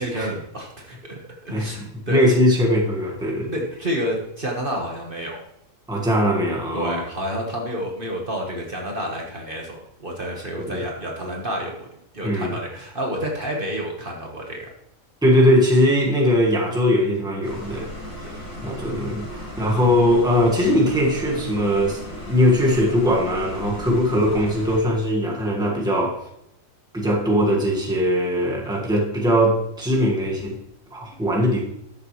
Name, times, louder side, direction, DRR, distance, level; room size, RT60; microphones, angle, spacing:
voice 1, 0.0-2.2 3.5-5.4 6.7-11.9 12.1-14.7, equal, 40° right, 0 dB, 1.5 m, -29 dB
voice 2, 1.5-3.5 5.9-7.0 10.6-10.8 12.2-12.5 15.2-17.9 18.6-22.0 22.3-26.3 26.9-30.6 30.9-31.6, equal, 5° right, -2 dB, 1.5 m, -20 dB
sound 1, 17.4-24.8, left 1 dB, 75° left, 3.2 m, -36 dB
13.0 x 6.8 x 3.2 m, 0.78 s
omnidirectional pair, 1.4 m